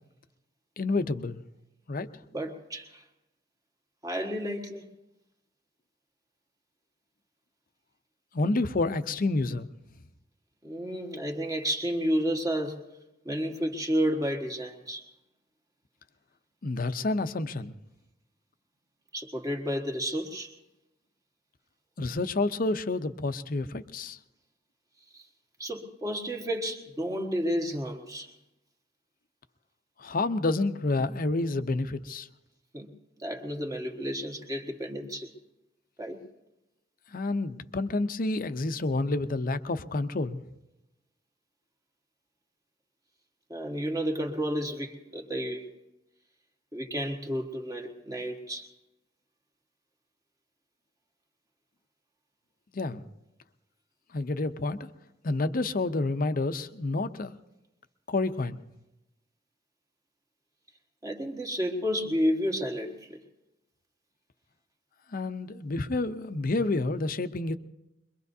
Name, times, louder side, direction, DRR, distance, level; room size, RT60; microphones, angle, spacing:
voice 1, 0.8-1.4 1.9-2.1 8.3-9.7 16.6-17.7 22.0-24.2 30.0-32.3 37.1-40.4 52.7-53.0 54.1-54.8 55.2-57.3 58.1-58.6 65.1-67.5, left 2 dB, 50° left, 0.7 m, -29 dB
voice 2, 2.3-3.0 4.0-4.9 10.6-12.8 13.2-15.0 19.1-20.5 25.1-25.3 25.6-28.3 32.7-32.9 33.2-35.3 36.0-36.2 43.5-45.7 46.7-48.7 61.0-63.2, equal, 20° right, 1.5 m, -31 dB
23.5 x 22.5 x 2.7 m
head